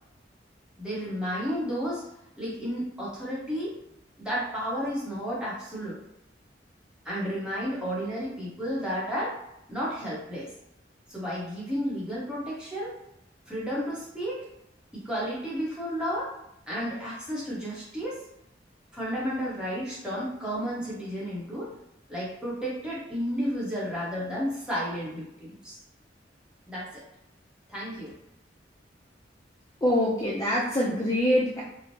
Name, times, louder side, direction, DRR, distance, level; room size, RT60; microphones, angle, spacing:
voice 1, 0.8-2.0 2.4-3.7 4.2-6.0 7.0-9.3 9.7-10.5 11.1-12.9 13.5-14.4 14.9-16.3 16.7-18.2 18.9-21.7 22.1-25.8 26.7-27.0 27.7-28.1, equal, 5° right, -8 dB, 0.9 m, -32 dB
voice 2, 29.8-31.6, equal, 20° left, -6 dB, 0.4 m, -24 dB
3.0 x 2.1 x 2.7 m, 0.81 s
head